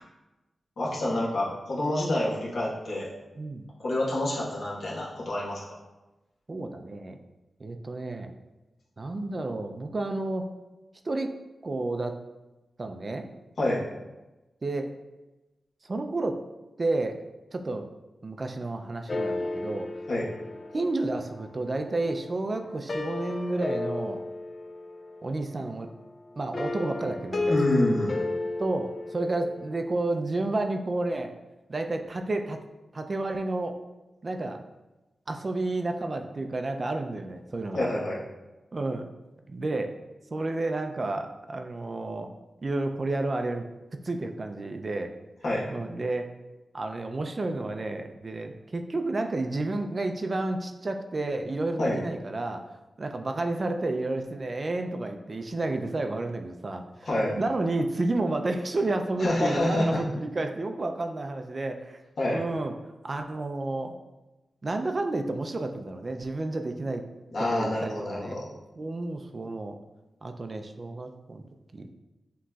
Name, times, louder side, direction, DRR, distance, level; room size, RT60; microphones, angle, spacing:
voice 1, 0.8-3.1 3.8-5.8 13.6-13.8 20.1-20.2 27.5-28.1 37.7-38.2 45.4-45.6 51.8-52.0 57.0-57.3 59.2-60.0 62.2-62.4 67.3-68.5, left 1 dB, 70° left, -5 dB, 1.2 m, -27 dB
voice 2, 3.4-3.7 6.5-7.2 7.6-8.3 9.0-10.5 11.0-11.3 11.6-12.2 12.8-13.3 14.6-14.9 15.8-16.4 16.8-17.2 17.5-17.9 18.2-19.9 20.7-24.2 25.2-25.9 26.4-27.6 28.6-31.3 31.7-32.6 32.9-33.8 34.2-34.6 35.3-37.9 38.7-39.1 39.5-39.9 40.3-42.3 42.6-43.7 44.0-45.1 45.7-46.3 46.7-52.6 53.0-57.1 57.3-62.0 62.3-62.7 63.0-63.9 64.6-67.0 67.5-68.4 68.8-69.8 70.2-71.9, right 2 dB, 40° right, 5 dB, 0.4 m, -31 dB
sound 1, 19.1-22.1 22.6-25.4 26.5-29.8, left 2 dB, 45° left, 0.4 m, -33 dB
7.2 x 3.0 x 2.3 m, 1.1 s
wide cardioid pair, 105°, 0 cm